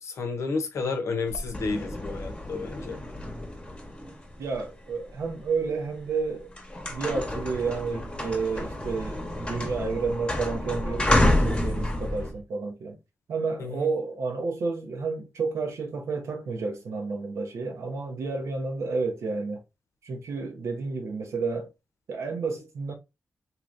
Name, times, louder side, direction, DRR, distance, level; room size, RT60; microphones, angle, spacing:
voice 1, 0.0-3.0 13.6-13.9, left 4 dB, 75° left, 0.7 m, -31 dB
sound 1, 1.3-5.5 6.0-6.2 6.5-12.3, left 1 dB, 20° left, 0.9 m, -29 dB
voice 2, 4.4-6.5 6.9-13.0 13.3-19.6 20.0-21.7 22.1-22.9, right 4 dB, 85° right, 0.8 m, -31 dB
sound 2, 6.8-12.4, right 2 dB, 35° right, 0.9 m, -47 dB
3.1 x 2.8 x 2.5 m
cardioid pair, 75°, 5 cm